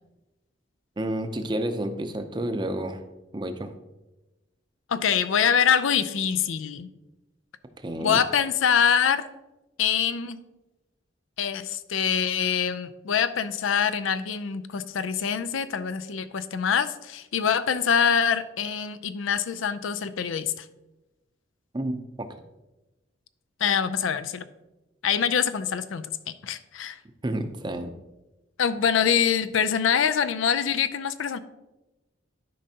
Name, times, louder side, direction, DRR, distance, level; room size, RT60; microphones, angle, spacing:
voice 1, 1.0-3.0 3.3-3.7 7.8-8.2 21.7-22.4 27.2-27.9, right 1 dB, 25° right, 8 dB, 0.5 m, -30 dB
voice 2, 4.9-6.9 8.0-9.2 9.8-10.4 11.4-20.6 23.6-24.4 25.0-26.1 26.4-27.0 28.6-31.4, left 7 dB, 90° left, 12 dB, 0.5 m, -24 dB
12.5 x 5.2 x 2.8 m, 1.0 s
head